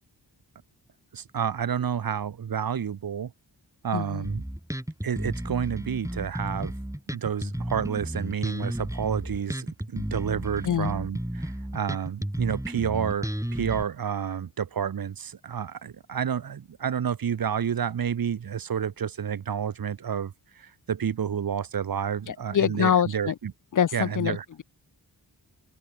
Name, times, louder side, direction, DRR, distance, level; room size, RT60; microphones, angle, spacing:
voice 1, 1.1-3.3 3.8-4.4 5.0-6.7 7.1-23.5 23.9-24.4, right 8 dB, 55° right, 0.8 m, -30 dB
voice 2, 3.9-4.2 10.6-10.9 22.3-23.3 23.7-24.6, left 8 dB, 45° left, 0.5 m, -25 dB
Bass guitar, 4.2-13.8, right 1 dB, 5° right, 4.0 m, -33 dB
cardioid pair, 40°, 43 cm